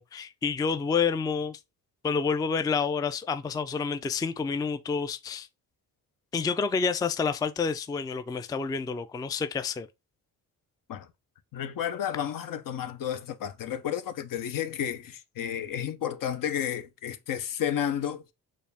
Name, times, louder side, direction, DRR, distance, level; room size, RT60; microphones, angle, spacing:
voice 1, 0.0-1.6 2.0-5.5 6.3-9.9, left 5 dB, 10° left, 0.3 m, -29 dB
voice 2, 11.5-18.2, left 9 dB, 60° left, 0.6 m, -32 dB
4.2 x 2.3 x 3.4 m
supercardioid pair, 60°, 37 cm